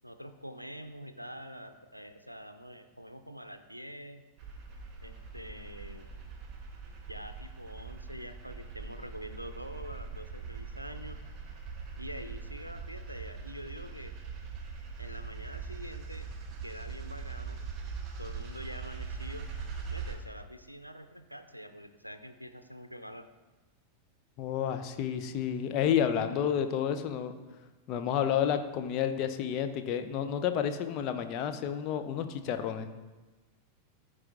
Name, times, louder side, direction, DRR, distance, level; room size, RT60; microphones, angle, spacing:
voice 1, 0.0-4.2 5.0-6.1 7.1-11.2 12.0-14.2 15.0-16.3 16.6-17.6 18.2-19.5 19.9-23.2, equal, 90° right, 8 dB, 0.5 m, -45 dB
sound 1, 4.4-20.2, right 5 dB, 30° right, 1.4 m, -42 dB
voice 2, 24.4-27.3 27.9-32.9, left 9 dB, 40° left, 7 dB, 0.8 m, -30 dB
14.0 x 4.9 x 3.7 m, 1.2 s
figure-of-eight pair, 90°, 0 cm